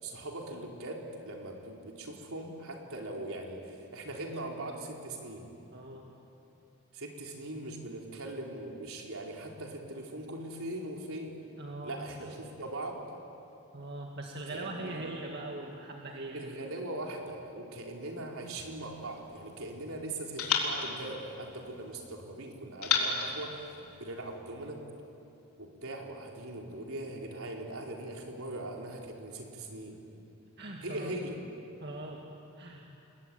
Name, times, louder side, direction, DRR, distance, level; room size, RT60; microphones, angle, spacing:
voice 1, 0.0-5.5 6.9-11.3 11.8-13.0 14.5-15.2 16.3-23.6 24.0-24.8 25.6-30.0 30.8-31.4, right 1 dB, 75° right, 0 dB, 4.2 m, -40 dB
voice 2, 5.7-6.1 11.6-12.4 13.7-16.7 30.6-31.1 31.8-32.2 32.6-32.9, right 2 dB, 50° right, 0 dB, 2.0 m, -41 dB
sound 1, 18.6-19.8 20.4-22.0 22.8-24.4, left 5 dB, 85° left, 4.1 m, -34 dB
29.0 x 22.0 x 9.3 m, 2.8 s
head